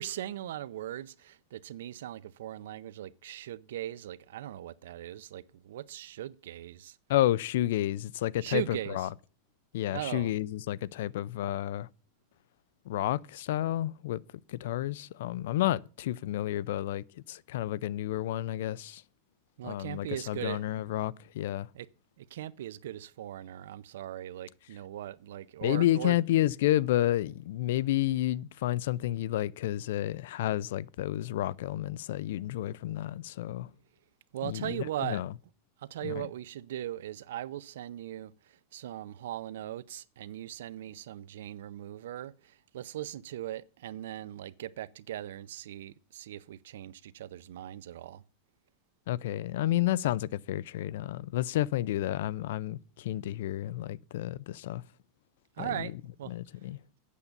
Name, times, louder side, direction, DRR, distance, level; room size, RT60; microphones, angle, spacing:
voice 1, 0.0-7.0 8.4-9.1 9.9-10.3 19.6-20.6 21.7-21.9 22.2-26.2 34.3-35.2 35.8-48.2 55.6-55.9 56.2-56.3, right 12 dB, 85° right, 0.6 m, -39 dB
voice 2, 7.1-9.1 9.7-11.9 12.9-14.2 14.5-19.0 19.6-21.7 25.6-33.7 34.4-35.3 36.0-36.3 49.1-54.8 55.6-55.9 56.3-56.8, left 14 dB, 70° left, 0.4 m, -30 dB
8.4 x 7.0 x 6.7 m
supercardioid pair, 165°, 0 cm